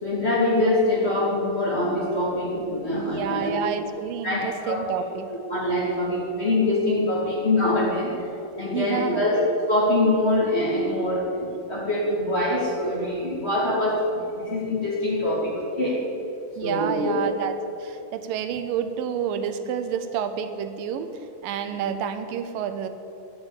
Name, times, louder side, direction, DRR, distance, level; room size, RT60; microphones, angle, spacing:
voice 1, 0.0-3.6 4.2-5.0 5.3-8.3 8.6-9.4 9.7-11.3 11.7-16.0 16.6-17.1 21.7-21.8, left 1 dB, 20° left, -6 dB, 2.4 m, -24 dB
voice 2, 2.9-5.3 8.7-9.2 16.6-17.5 17.8-21.1 21.4-22.9, right 8 dB, 85° right, 9 dB, 2.4 m, -29 dB
11.5 x 6.9 x 8.8 m, 2.7 s
omnidirectional pair, 3.8 m